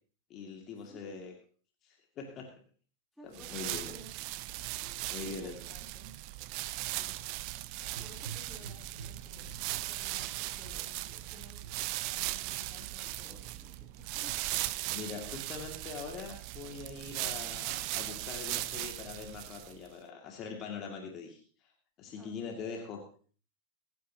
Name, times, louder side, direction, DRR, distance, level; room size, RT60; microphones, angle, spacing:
voice 1, 0.3-1.3 1.8-2.5 3.2-3.9 5.1-5.6 14.9-21.4 22.0-23.0, left 5 dB, 35° left, 1 dB, 2.4 m, -42 dB
voice 2, 0.9-1.3 3.1-6.2 7.0-7.2 7.8-11.7 12.0-14.7 15.2-15.5 22.2-22.6, left 1 dB, ahead, -2 dB, 3.7 m, -56 dB
sound 1, 3.3-19.9, right 18 dB, 45° right, 0.6 m, -38 dB
Gurgling / Engine, 7.7-14.4, right 4 dB, 60° right, 4.3 m, -51 dB
24.5 x 9.5 x 2.9 m, 0.42 s
figure-of-eight pair, 90°, 0 cm